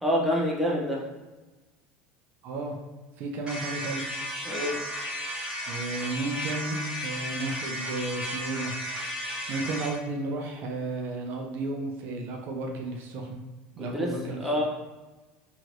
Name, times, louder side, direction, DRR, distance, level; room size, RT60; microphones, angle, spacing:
voice 1, 0.0-1.0 4.4-4.8 13.8-14.6, equal, 5° right, -3 dB, 0.6 m, -27 dB
voice 2, 2.4-2.8 3.2-4.0 5.7-8.7 9.5-13.4 13.8-14.4, right 2 dB, 50° right, 2 dB, 0.4 m, -33 dB
sound 1, 3.5-10.0, equal, 20° right, 1.3 m, -34 dB
3.0 x 2.9 x 2.5 m, 1.2 s
supercardioid pair, 135°, 4 cm